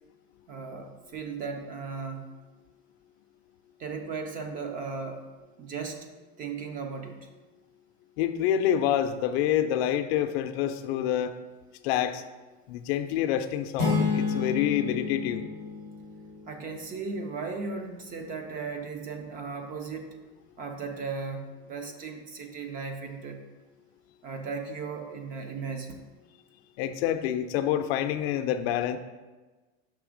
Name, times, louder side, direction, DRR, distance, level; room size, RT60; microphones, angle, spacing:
voice 1, 0.5-2.2 3.8-5.2 5.6-6.1 6.4-7.3 16.5-20.2 20.6-23.4 24.2-26.0, right 4 dB, 25° right, 5 dB, 0.4 m, -36 dB
voice 2, 8.2-11.3 11.8-12.2 12.7-15.5 26.8-29.0, left 10 dB, 65° left, 9 dB, 0.5 m, -27 dB
sound 1, 13.8-16.6, left 4 dB, 55° right, 2.0 m, -30 dB
6.0 x 3.3 x 4.9 m, 1.2 s
supercardioid pair, 160°, 33 cm